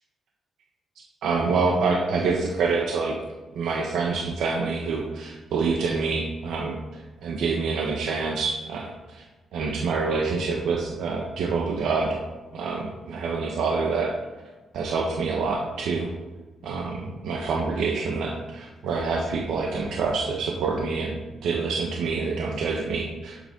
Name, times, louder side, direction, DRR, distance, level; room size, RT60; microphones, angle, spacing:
voice 1, 1.2-3.1 3.5-6.8 7.2-9.2 9.5-12.2 12.5-14.1 14.7-16.1 16.6-23.4, right 4 dB, 75° right, 0 dB, 1.3 m, -26 dB
11.5 x 8.1 x 4.0 m, 1.2 s
cardioid pair, 170°, 0 cm